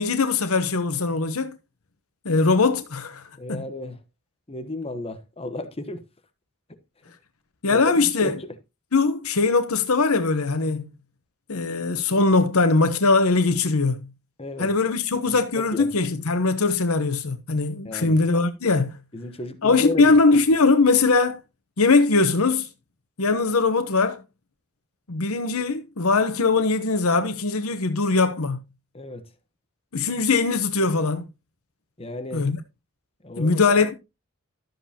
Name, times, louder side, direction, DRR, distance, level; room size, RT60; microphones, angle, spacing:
voice 1, 0.0-1.6 2.2-3.2 3.5-3.6 7.6-8.4 8.9-10.9 11.5-14.0 14.6-19.0 19.6-21.4 21.8-22.7 23.2-24.2 25.1-28.6 29.9-31.2 32.3-32.6 33.4-33.9, left 3 dB, 85° left, 1.0 m, -21 dB
voice 2, 3.4-4.0 4.5-6.0 7.7-8.5 14.4-14.7 15.6-15.9 17.8-18.2 19.1-20.2 28.9-29.3 32.0-32.5 33.2-33.8, left 2 dB, 25° left, 1.1 m, -33 dB
13.0 x 7.8 x 2.9 m
head